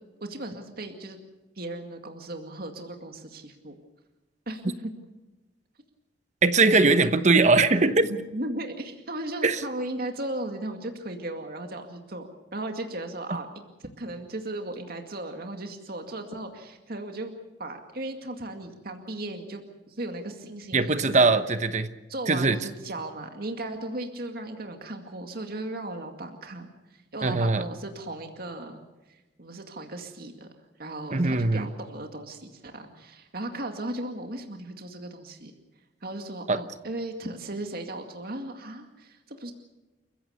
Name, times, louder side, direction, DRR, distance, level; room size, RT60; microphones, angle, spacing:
voice 1, 0.2-1.2 1.6-3.8 4.5-4.9 8.0-13.5 13.8-17.3 17.6-19.6 19.9-21.3 22.1-26.7 26.9-28.8 29.4-30.5 30.8-35.5 36.0-39.5, right 1 dB, 55° right, 4 dB, 2.2 m, -36 dB
voice 2, 6.4-8.1 9.4-9.6 20.7-21.9 22.3-22.6 27.2-27.7 31.1-31.7 36.5-36.6, right 3 dB, 40° right, 11 dB, 1.0 m, -21 dB
29.0 x 15.5 x 7.0 m, 1.1 s
head